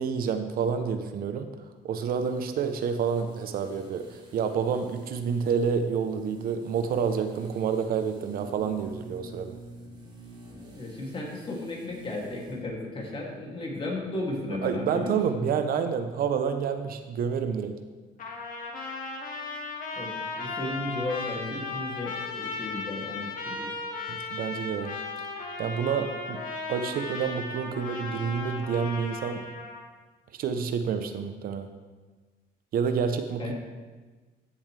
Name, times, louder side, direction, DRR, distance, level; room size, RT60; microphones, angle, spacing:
voice 1, 0.0-1.5 1.8-9.5 14.6-17.7 24.1-25.0 25.6-26.4 26.7-29.5 30.3-31.7 32.7-33.5, right 6 dB, 60° right, 8 dB, 0.8 m, -28 dB
sound 1, 2.1-12.7 13.0-13.1, right 1 dB, 25° right, 2.0 m, -49 dB
voice 2, 10.7-15.5 20.0-23.7 33.4-33.5, left 2 dB, 30° left, -1 dB, 2.6 m, -35 dB
Trumpet, 18.2-29.8, left 3 dB, 55° left, 1.8 m, -36 dB
15.0 x 7.1 x 3.3 m, 1.3 s
cardioid pair, 110°, 17 cm